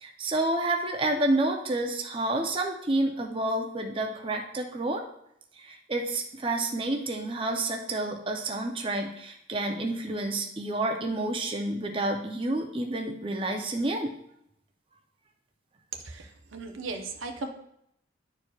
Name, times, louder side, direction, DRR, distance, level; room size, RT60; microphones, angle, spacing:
voice 1, 0.0-5.0 5.6-14.1, right 2 dB, 25° right, 2 dB, 0.6 m, -29 dB
voice 2, 16.0-17.5, right 3 dB, 90° right, 4 dB, 0.8 m, -37 dB
11.0 x 4.5 x 2.4 m, 0.74 s
head